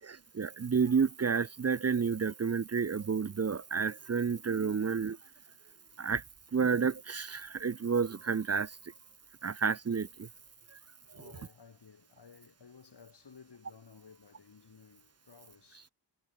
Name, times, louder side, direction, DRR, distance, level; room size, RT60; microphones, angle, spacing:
voice 1, 0.1-5.2 6.0-6.2 6.5-8.7 9.4-10.1, right 5 dB, 35° right, 0.6 m, -30 dB
voice 2, 11.1-15.9, left 6 dB, 75° left, 3.0 m, -56 dB
wide cardioid pair, 60°, 41 cm